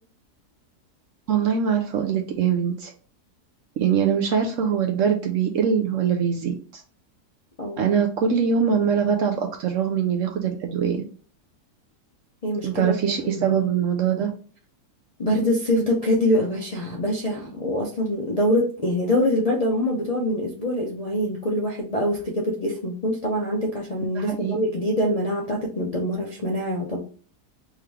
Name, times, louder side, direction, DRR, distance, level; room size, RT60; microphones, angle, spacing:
voice 1, 1.3-2.9 3.8-6.8 7.8-11.0 12.6-14.3 24.2-24.6, right 7 dB, 70° right, 3 dB, 0.8 m, -23 dB
voice 2, 7.6-8.0 12.4-13.0 13.2-13.6 15.2-27.0, left 1 dB, 45° left, -4 dB, 0.5 m, -24 dB
3.5 x 3.1 x 3.3 m, 0.41 s
omnidirectional pair, 1.7 m